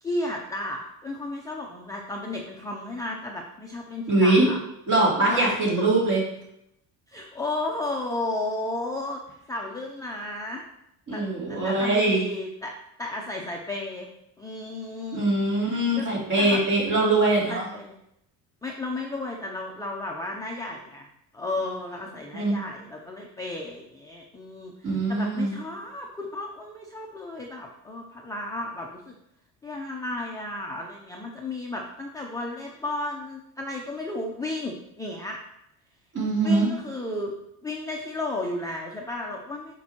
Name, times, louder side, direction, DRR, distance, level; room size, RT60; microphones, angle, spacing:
voice 1, 0.0-4.6 5.3-5.9 7.1-9.2 9.5-10.6 11.1-11.2 11.5-12.7 13.0-14.1 14.4-15.3 15.6-16.1 16.4-16.6 17.5-17.9 18.6-21.1 21.3-29.1 29.6-35.4 36.4-37.3 37.6-39.7, left 2 dB, 10° left, -1 dB, 0.4 m, -33 dB
voice 2, 4.1-4.5 4.9-6.2 11.1-12.2 15.1-17.6 22.3-22.6 24.8-25.6 36.1-36.7, right 2 dB, 40° right, -4 dB, 2.8 m, -22 dB
9.3 x 5.2 x 2.9 m, 0.79 s
cardioid pair, 160°, 45 cm